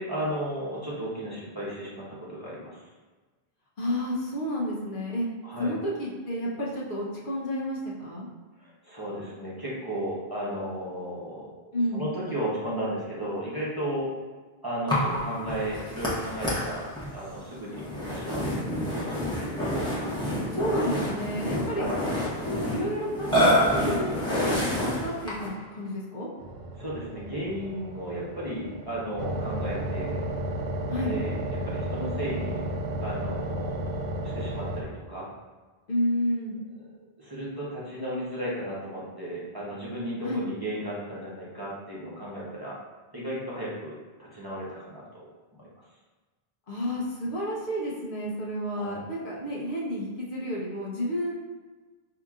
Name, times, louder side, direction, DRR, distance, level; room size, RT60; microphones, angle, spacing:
voice 1, 0.0-2.8 5.4-5.7 8.6-14.1 14.6-16.8 17.1-19.3 21.7-22.0 26.8-30.2 31.0-32.6 33.0-35.3 36.8-42.8 43.1-43.9 44.2-45.2 45.6-45.7 48.7-49.0, right 1 dB, 25° right, -8 dB, 0.9 m, -34 dB
voice 2, 3.8-5.3 5.6-8.3 11.7-12.0 20.5-23.5 23.9-26.3 30.9-31.2 35.9-36.5 40.2-40.4 46.7-51.3, equal, 60° left, -5 dB, 1.0 m, -31 dB
Burping eructation, 14.9-25.6, equal, 5° left, 0.9 m, -28 dB
sound 1, 26.4-34.8, right 1 dB, 90° right, 0.8 m, -33 dB
5.6 x 2.8 x 2.4 m, 1.3 s
omnidirectional pair, 1.1 m